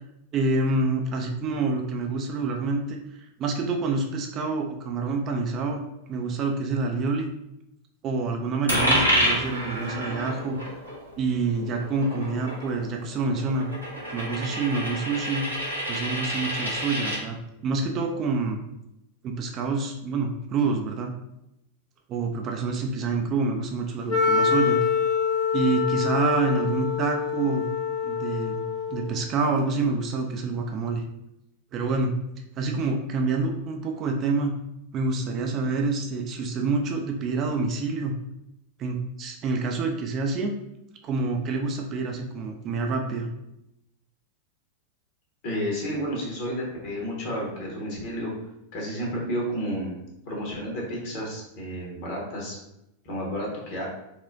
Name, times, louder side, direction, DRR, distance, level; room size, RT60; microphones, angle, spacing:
voice 1, 0.3-5.8 6.1-7.3 8.0-10.6 11.2-13.7 14.1-15.4 15.9-18.6 19.2-21.1 22.1-24.8 25.5-27.7 28.0-28.6 28.9-31.0 31.7-32.1 32.5-34.5 34.9-38.2 38.8-40.5 41.0-43.3, right 3 dB, 35° right, 2 dB, 0.4 m, -27 dB
Coin (dropping), 8.7-17.2, equal, 90° right, 1.1 m, -28 dB
Wind instrument woodwind instrument, 24.1-29.2, left 6 dB, 30° left, 0.6 m, -25 dB
voice 2, 45.4-48.3 48.7-49.9 50.3-52.6 53.0-53.8, equal, 50° left, -3 dB, 1.3 m, -31 dB
4.2 x 2.1 x 2.5 m, 0.86 s
figure-of-eight pair, 90°, 0 cm